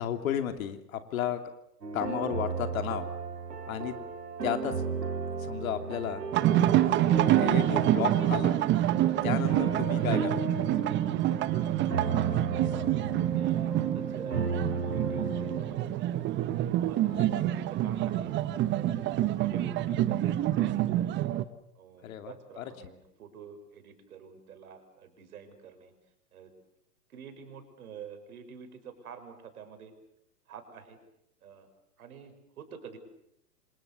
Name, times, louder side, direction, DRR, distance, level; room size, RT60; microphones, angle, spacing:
voice 1, 0.0-1.4 1.9-3.1 3.7-3.9 4.4-4.8 5.4-6.2 7.3-8.5 9.2-10.3 17.1-17.4 22.0-22.9, left 10 dB, 60° left, 7 dB, 3.0 m, -33 dB
sound 1, 1.8-15.6, right 4 dB, 80° right, 5.0 m, -34 dB
sound 2, 6.3-21.4, right 13 dB, 25° right, 1.1 m, -27 dB
voice 2, 13.3-16.3 16.7-18.4 18.7-21.3 21.7-25.9 26.3-26.5 27.1-29.9 30.5-31.0 31.4-31.7 32.0-33.0, right 6 dB, 65° right, 8 dB, 6.4 m, -48 dB
28.0 x 26.5 x 7.0 m, 0.78 s
hypercardioid pair, 115°, 47 cm